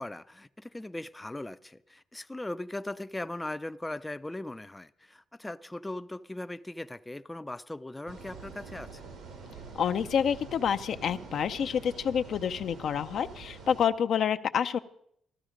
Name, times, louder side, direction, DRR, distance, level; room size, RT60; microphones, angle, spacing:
voice 1, 0.0-9.0, left 1 dB, 10° left, 0.4 m, -39 dB
sound 1, 8.1-13.9, right 4 dB, 80° right, 2.2 m, -46 dB
voice 2, 9.7-14.8, left 8 dB, 65° left, 0.5 m, -28 dB
14.0 x 12.5 x 5.1 m
cardioid pair, 90°, 0 cm